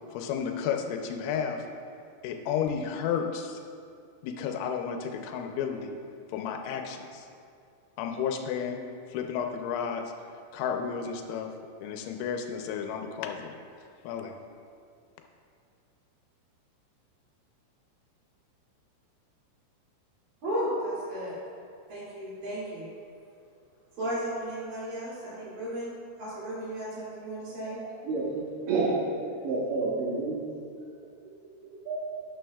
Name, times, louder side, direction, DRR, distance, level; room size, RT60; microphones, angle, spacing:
voice 1, 0.1-1.6 2.2-3.6 4.2-5.9 6.3-7.3 8.0-8.8 9.1-10.0 10.5-11.5 11.8-13.5 14.0-14.4, left 7 dB, 85° left, 4 dB, 3.3 m, -32 dB
voice 2, 20.4-21.4 21.9-22.9 24.0-25.9 26.2-27.8, equal, 50° right, -9 dB, 3.6 m, -34 dB
voice 3, 28.1-29.0 29.4-30.4 31.6-32.0, right 3 dB, 70° right, -5 dB, 3.0 m, -29 dB
12.5 x 9.4 x 2.3 m, 2.4 s
omnidirectional pair, 5.9 m